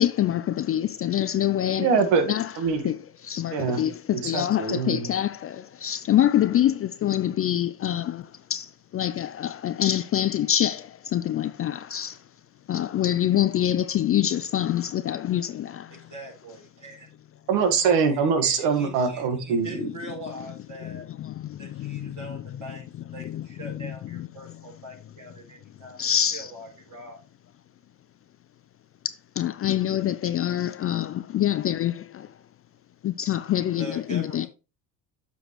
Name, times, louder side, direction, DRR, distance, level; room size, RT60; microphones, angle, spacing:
voice 1, 0.0-1.9 2.3-2.5 2.8-3.0 3.2-12.2 12.7-16.0 19.8-19.9 20.8-22.4 23.2-23.8 24.1-24.3 26.0-26.5 29.4-32.3 33.0-34.5, left 11 dB, 30° left, 0.4 m, -26 dB
voice 2, 1.8-2.8 3.5-3.8 4.1-5.1 17.5-19.9, right 5 dB, 65° right, 1.8 m, -23 dB
voice 3, 15.9-17.1 17.8-21.1 21.6-22.9 23.1-26.0 26.3-27.2 33.8-34.5, right 1 dB, 40° right, 4.0 m, -42 dB
7.7 x 6.2 x 3.1 m
hypercardioid pair, 70°, 48 cm